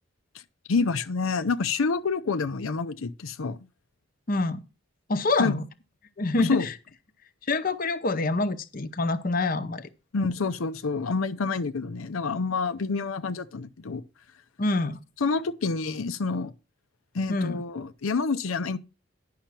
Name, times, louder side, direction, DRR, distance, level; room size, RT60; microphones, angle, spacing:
voice 1, 0.7-3.6 5.4-5.6 6.4-6.7 10.1-14.0 15.2-16.5 17.1-18.8, left 4 dB, 90° left, 0.6 m, -28 dB
voice 2, 4.3-4.6 5.1-5.6 6.2-6.7 7.5-9.9 14.6-15.0 17.3-17.6, left 2 dB, 45° left, 0.8 m, -26 dB
10.5 x 5.7 x 5.8 m
head